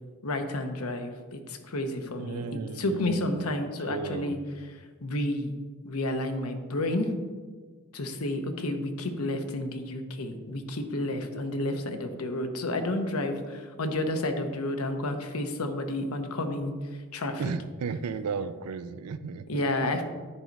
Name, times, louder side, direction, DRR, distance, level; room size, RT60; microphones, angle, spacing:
voice 1, 0.2-4.4 5.0-5.5 5.8-7.1 7.9-16.7 17.1-17.5 19.5-20.0, left 1 dB, 75° left, 6 dB, 0.9 m, -31 dB
voice 2, 2.2-4.4 17.4-19.7, right 5 dB, 80° right, 13 dB, 0.4 m, -35 dB
9.9 x 4.6 x 4.0 m, 1.5 s
head